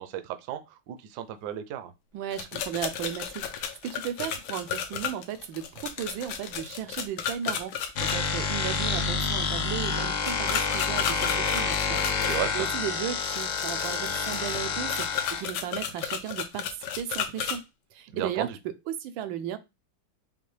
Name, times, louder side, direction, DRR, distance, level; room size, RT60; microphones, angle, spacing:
voice 1, 0.0-1.9 12.2-12.7 18.1-18.6, right 11 dB, 70° right, 1.0 m, -34 dB
voice 2, 2.1-17.6 17.9-19.6, right 10 dB, 90° right, 1.4 m, -35 dB
sound 1, 2.3-8.2 10.2-12.4 13.2-17.6, left 8 dB, 70° left, 1.2 m, -33 dB
sound 2, 8.0-15.4, left 5 dB, 90° left, 0.6 m, -28 dB
5.7 x 2.2 x 3.1 m
omnidirectional pair, 2.1 m